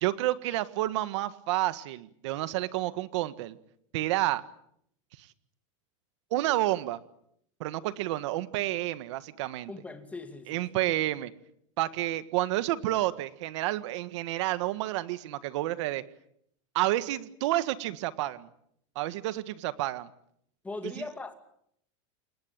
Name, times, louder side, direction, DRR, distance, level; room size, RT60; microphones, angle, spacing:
voice 1, 0.0-3.6 3.9-4.4 6.3-7.0 7.6-9.7 10.5-11.3 11.8-16.0 16.7-18.5 19.0-20.1 20.8-20.9, right 16 dB, 65° right, 1.7 m, -30 dB
voice 2, 9.7-10.9 20.6-21.3, left 3 dB, 10° left, 2.5 m, -40 dB
29.0 x 19.0 x 9.0 m
supercardioid pair, 160°, 16 cm